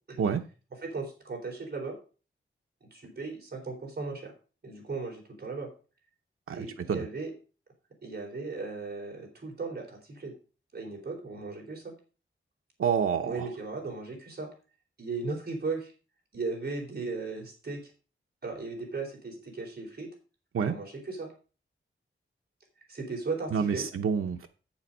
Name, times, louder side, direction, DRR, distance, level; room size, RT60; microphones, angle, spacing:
voice 1, 0.8-2.0 2.9-4.3 4.6-5.7 6.5-7.3 8.0-10.3 10.7-11.9 13.2-14.5 15.0-15.9 16.3-17.8 18.4-20.1 20.7-21.3 22.9-23.9, right 3 dB, 50° right, 0 dB, 3.9 m, -36 dB
voice 2, 6.5-7.0 12.8-13.3 20.5-20.7 23.5-24.5, right 6 dB, 85° right, 4 dB, 0.7 m, -28 dB
8.3 x 7.2 x 5.3 m, 0.35 s
wide cardioid pair, 130°, 21 cm